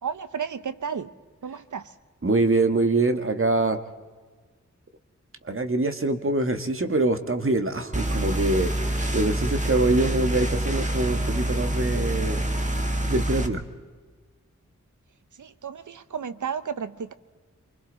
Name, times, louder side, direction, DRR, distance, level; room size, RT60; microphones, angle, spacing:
voice 1, 0.0-1.1 1.4-1.9 15.4-17.1, right 7 dB, 80° right, 0.9 m, -33 dB
voice 2, 2.2-3.8 5.5-8.7 9.1-12.4 13.1-13.6, right 2 dB, 45° right, 1.6 m, -24 dB
sound 1, 7.9-13.5, right 1 dB, 25° right, 1.8 m, -26 dB
27.5 x 24.0 x 4.0 m
wide cardioid pair, 70°, 30 cm